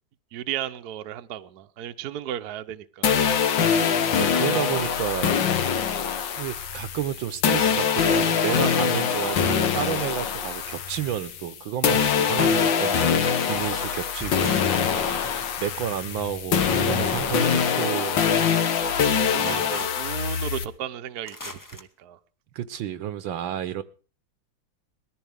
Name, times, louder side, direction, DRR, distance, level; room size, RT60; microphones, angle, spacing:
voice 1, 0.3-3.1 3.6-4.3 14.9-15.2 19.3-22.2, right 11 dB, 60° right, 9 dB, 1.3 m, -35 dB
sound 1, 3.0-11.5 11.8-20.6, left 7 dB, 70° left, 1.8 m, -24 dB
voice 2, 4.2-5.4 6.4-14.6 15.6-18.2 19.4-19.7 22.6-23.8, right 10 dB, 80° right, 13 dB, 1.7 m, -31 dB
sound 2, 14.2-15.7 16.6-18.0 19.4-20.0 21.3-21.8, left 2 dB, 15° left, 0.7 m, -37 dB
21.0 x 14.0 x 3.5 m, 0.36 s
omnidirectional pair, 2.1 m